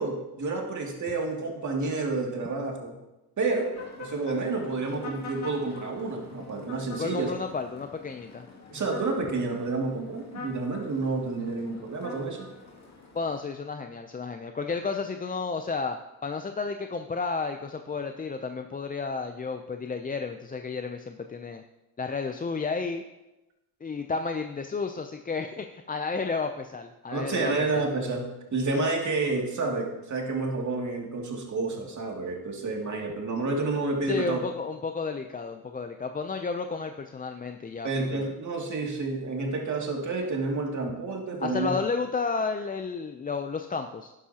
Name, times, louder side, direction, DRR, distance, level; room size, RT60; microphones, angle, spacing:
voice 1, 0.0-3.0 3.4-7.3 8.7-12.5 27.1-28.2 28.5-34.4 37.8-41.7, right 3 dB, 45° right, 0 dB, 2.5 m, -29 dB
sound 1, 3.7-13.4, left 4 dB, 40° left, 2.4 m, -45 dB
voice 2, 7.0-8.5 13.1-21.6 22.0-23.0 23.8-27.8 34.1-38.3 41.4-44.1, left 4 dB, 20° left, 6 dB, 0.5 m, -32 dB
11.5 x 9.7 x 2.9 m, 0.99 s
cardioid pair, 90°, 41 cm